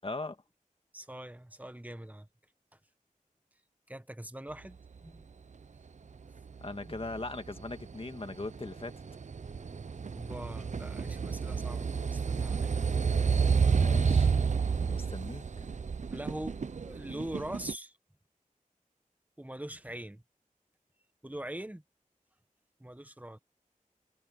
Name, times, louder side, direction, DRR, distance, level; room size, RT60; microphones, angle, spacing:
voice 1, 0.0-0.4 6.6-8.9 13.8-14.4 14.9-15.7, left 2 dB, 45° left, 1.9 m, -39 dB
voice 2, 0.9-2.3 2.7-2.8 3.9-5.3 6.9-7.0 10.1-13.1 16.1-18.0 19.4-20.2 21.2-21.8 22.8-23.4, right 1 dB, 10° right, 1.5 m, -43 dB
sound 1, 6.4-17.7, right 5 dB, 60° right, 0.6 m, -30 dB
wide cardioid pair, 75°, 14 cm